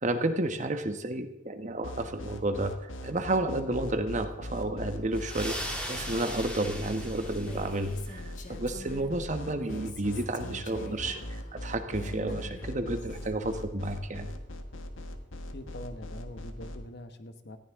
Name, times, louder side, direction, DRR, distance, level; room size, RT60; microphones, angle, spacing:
voice 1, 0.0-2.7 3.0-5.6 5.9-14.3, right 2 dB, 40° right, 8 dB, 1.1 m, -31 dB
sound 1, 1.8-16.8, left 1 dB, 85° left, 1.4 m, -40 dB
sound 2, 5.1-8.2, equal, 5° left, 2.6 m, -39 dB
Female speech woman speaking, 7.3-9.2 9.5-13.3, left 1 dB, 40° left, 1.6 m, -47 dB
voice 2, 15.5-17.6, left 1 dB, 55° left, 9 dB, 1.1 m, -44 dB
19.0 x 14.5 x 3.6 m, 0.92 s
head